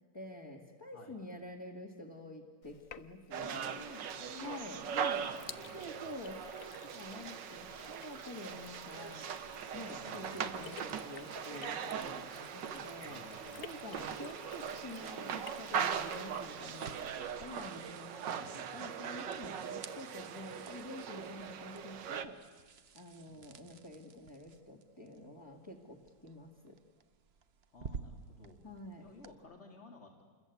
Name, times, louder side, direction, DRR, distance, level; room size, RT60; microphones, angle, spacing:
voice 1, 0.1-3.7 4.4-5.3 5.7-9.3 9.7-13.3 13.6-18.5 18.7-22.4 22.9-26.8 28.6-29.1, left 1 dB, 15° left, -1 dB, 2.1 m, -48 dB
Sink (filling or washing), 2.6-17.7, left 8 dB, 55° left, 1.2 m, -55 dB
sound 1, 3.3-22.2, right 7 dB, 75° right, 1.8 m, -40 dB
voice 2, 3.4-6.1 10.0-11.0 13.0-14.0 18.2-18.6 23.2-23.7 27.7-30.2, left 3 dB, 35° left, -1 dB, 2.8 m, -55 dB
sound 2, 16.0-29.3, right 6 dB, 45° right, 1.0 m, -53 dB
27.0 x 21.5 x 9.4 m, 1.5 s
omnidirectional pair, 1.9 m